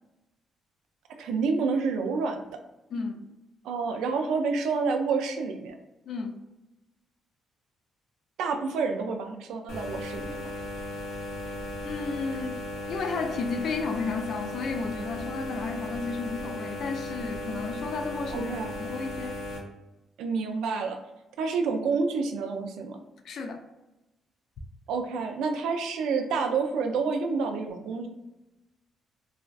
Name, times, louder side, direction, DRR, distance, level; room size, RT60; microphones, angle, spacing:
voice 1, 1.1-2.4 3.6-5.8 8.4-10.4 18.3-18.7 20.2-21.0 21.4-23.0 24.9-28.1, right 4 dB, 85° right, 6 dB, 0.3 m, -28 dB
voice 2, 2.9-3.3 6.1-6.3 11.8-12.6 12.9-18.5 18.8-19.4 23.2-23.6, left 4 dB, 65° left, 5 dB, 0.4 m, -32 dB
sound 1, 9.7-19.6, left 1 dB, 90° left, 0.7 m, -36 dB
2.4 x 2.3 x 2.2 m, 1.0 s
cardioid pair, 90°, 0 cm